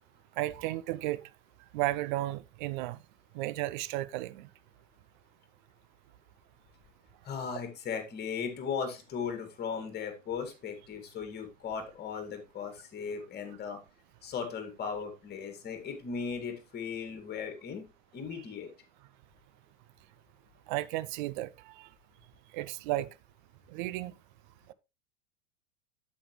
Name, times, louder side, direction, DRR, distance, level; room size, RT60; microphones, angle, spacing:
voice 1, 0.4-1.2 1.7-3.0 3.3-4.5 20.7-21.9 22.5-23.1 23.7-24.1, right 16 dB, 40° right, 0.5 m, -33 dB
voice 2, 7.2-13.8 14.2-17.9 18.1-18.7, left 6 dB, 25° left, 2.1 m, -37 dB
8.6 x 7.3 x 3.1 m
figure-of-eight pair, 85°, 38 cm